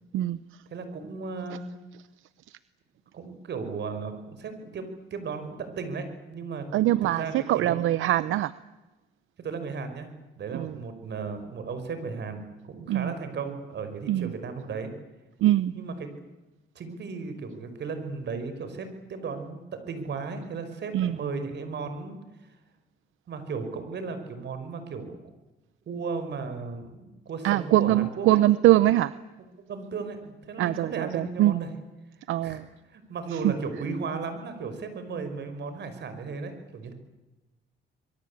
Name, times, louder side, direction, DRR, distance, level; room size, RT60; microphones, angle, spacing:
voice 1, 0.1-0.6 2.5-2.6 6.7-8.5 10.5-10.8 12.9-13.1 14.1-14.3 15.4-15.7 20.9-21.2 27.4-29.1 30.6-31.7 32.3-32.7 33.3-33.5, right 14 dB, 85° right, 16 dB, 0.8 m, -23 dB
voice 2, 0.7-1.7 3.1-6.7 7.1-7.8 9.4-14.9 15.7-15.9 16.8-22.5 23.3-25.2 25.9-28.4 29.7-31.7 32.4-32.6 32.9-36.9, right 4 dB, 60° right, 9 dB, 5.6 m, -35 dB
26.0 x 23.0 x 8.6 m, 1.1 s
cardioid pair, 90°, 20 cm